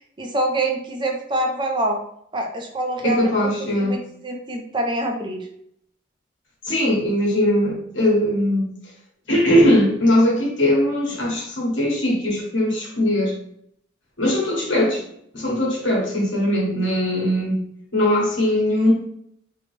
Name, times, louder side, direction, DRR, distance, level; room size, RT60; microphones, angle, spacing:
voice 1, 0.2-2.0 2.3-3.5 3.8-5.5, right 1 dB, 25° right, 2 dB, 0.5 m, -25 dB
voice 2, 3.0-4.0 6.6-8.7 9.3-13.3 14.2-15.1 15.3-17.6 17.9-18.9, left 1 dB, 70° left, -3 dB, 1.4 m, -20 dB
3.4 x 2.9 x 3.2 m, 0.70 s
head